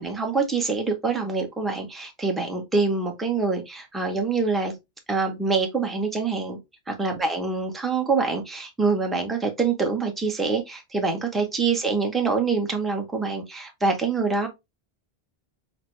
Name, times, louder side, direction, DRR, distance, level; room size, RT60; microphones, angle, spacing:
voice 1, 0.0-4.8 5.1-6.6 6.9-14.5, right 4 dB, ahead, 0.7 m, -25 dB
6.1 x 2.2 x 3.0 m
omnidirectional pair, 1.0 m